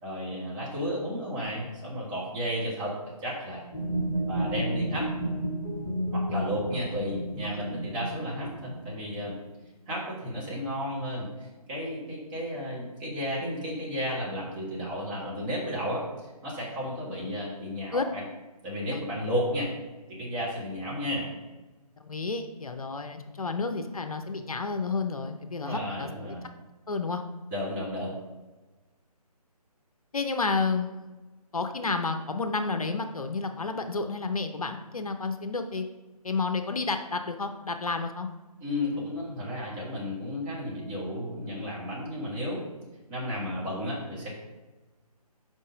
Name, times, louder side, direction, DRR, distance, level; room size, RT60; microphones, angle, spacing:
voice 1, 0.0-3.6 4.3-5.1 6.1-9.3 9.9-16.0 16.4-18.2 18.6-19.7 20.1-21.3 25.6-26.5 27.5-28.1 38.6-42.6 43.1-44.3, equal, 15° right, -6 dB, 1.4 m, -33 dB
sound 1, 3.7-9.4, right 1 dB, 25° left, 1.2 m, -32 dB
voice 2, 22.0-26.3 26.9-27.2 30.1-31.1 31.5-35.9 36.2-38.3, left 4 dB, 60° left, 7 dB, 0.6 m, -31 dB
5.4 x 5.1 x 5.2 m, 1.2 s
figure-of-eight pair, 150°, 20 cm